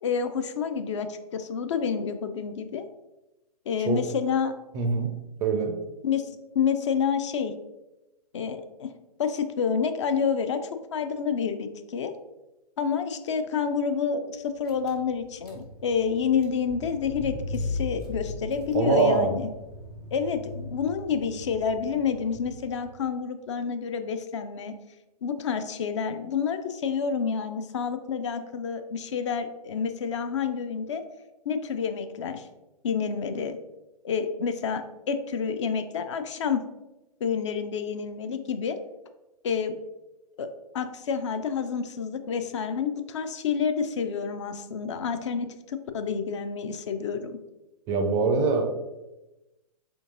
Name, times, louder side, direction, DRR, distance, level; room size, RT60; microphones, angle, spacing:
voice 1, 0.0-2.9 3.7-4.5 6.0-7.5 8.3-8.9 9.2-12.1 12.8-19.5 20.1-24.7 25.2-31.0 31.5-32.5 32.8-33.6 34.0-36.6 37.2-38.8 39.4-39.8 40.4-40.5 40.7-47.4, left 6 dB, 50° left, 8 dB, 0.4 m, -29 dB
voice 2, 4.7-5.1 5.4-5.7 18.7-19.4 47.9-48.6, right 4 dB, 20° right, 4 dB, 0.4 m, -23 dB
Car / Engine, 14.3-14.4 14.6-23.0, left 2 dB, 80° left, 1.4 m, -38 dB
4.3 x 3.8 x 2.5 m, 1.0 s
figure-of-eight pair, 120°, 20 cm